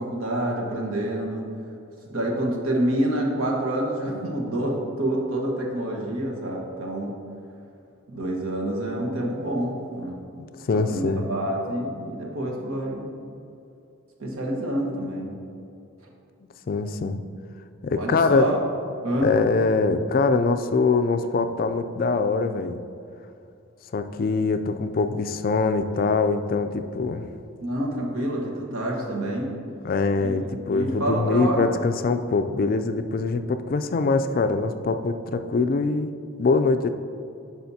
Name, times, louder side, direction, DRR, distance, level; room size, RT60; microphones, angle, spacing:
voice 1, 0.0-1.5 2.1-7.1 8.1-10.2 10.7-13.1 14.2-15.3 18.0-18.6 19.0-19.3 27.6-29.5 30.2-30.3 30.7-31.7, right 1 dB, 80° right, -2 dB, 1.3 m, -27 dB
voice 2, 10.4-11.3 16.7-17.2 17.8-18.5 19.2-22.8 23.9-27.3 29.8-36.1 36.4-36.9, left 4 dB, 40° left, 9 dB, 0.3 m, -23 dB
10.0 x 5.6 x 2.8 m, 2.6 s
head